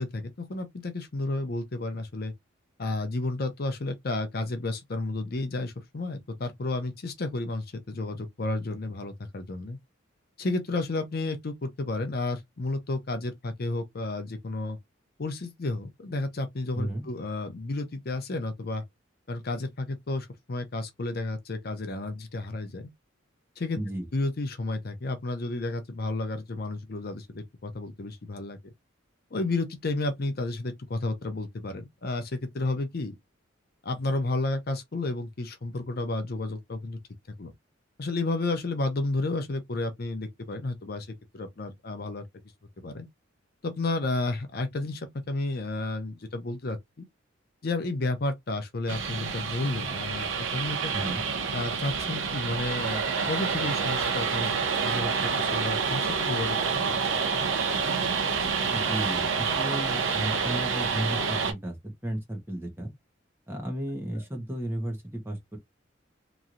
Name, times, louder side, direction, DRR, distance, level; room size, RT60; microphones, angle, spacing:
voice 1, 0.0-2.3 2.8-9.8 10.4-14.8 15.2-18.8 19.3-22.9 23.6-23.8 24.1-28.7 29.3-33.2 33.8-37.0 37.4-37.5 38.0-42.2 42.8-43.1 43.6-47.1 47.6-50.9 51.5-56.6 56.9-57.0, left 2 dB, 50° left, 0.6 m, -32 dB
voice 2, 23.7-24.1 50.9-51.3 58.7-61.8 62.0-62.9 63.5-65.6, right 1 dB, 10° right, 0.9 m, -33 dB
sound 1, 48.9-61.5, right 5 dB, 75° right, 0.8 m, -28 dB
3.0 x 2.7 x 2.5 m
head